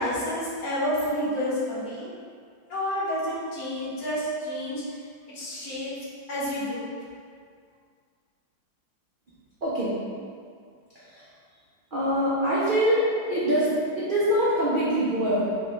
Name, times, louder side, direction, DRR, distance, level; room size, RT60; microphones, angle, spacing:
voice 1, 0.0-2.1 2.7-4.8 5.3-5.9 6.3-6.9, equal, 55° left, -7 dB, 1.3 m, -29 dB
voice 2, 9.6-9.9 10.9-11.3 11.9-13.0 13.3-15.5, equal, 85° right, -10 dB, 0.4 m, -24 dB
4.8 x 3.2 x 3.0 m, 2.1 s
omnidirectional pair, 2.1 m